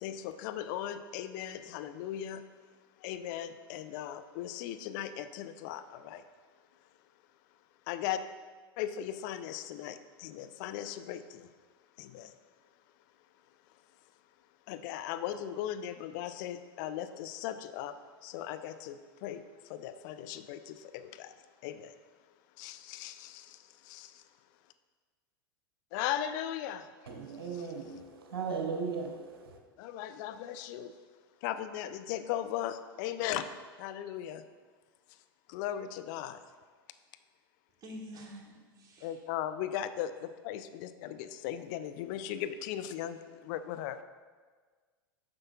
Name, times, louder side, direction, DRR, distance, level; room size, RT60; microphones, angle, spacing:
voice 1, 0.0-2.4 3.0-6.2 7.9-8.2 8.8-11.5 12.0-12.3 14.7-18.0 18.2-21.3 21.6-21.9 22.6-24.2 25.9-26.9 29.8-30.9 31.4-33.4 33.8-34.4 35.5-36.4 39.0-44.0, left 11 dB, 55° left, 0.4 m, -38 dB
voice 2, 27.1-29.6, right 5 dB, 75° right, 0.9 m, -37 dB
voice 3, 37.8-39.2, equal, 30° right, 1.7 m, -47 dB
9.7 x 6.4 x 2.4 m
hypercardioid pair, 90°, 12 cm